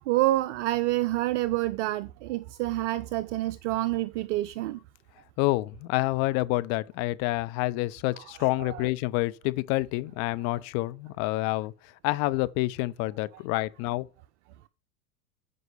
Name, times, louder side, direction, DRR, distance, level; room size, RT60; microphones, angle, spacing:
voice 1, 0.1-4.8 8.4-8.8, right 17 dB, 50° right, 0.6 m, -28 dB
voice 2, 5.4-14.1, left 19 dB, 35° left, 0.6 m, -28 dB
13.5 x 5.4 x 3.4 m
figure-of-eight pair, 85°, 45 cm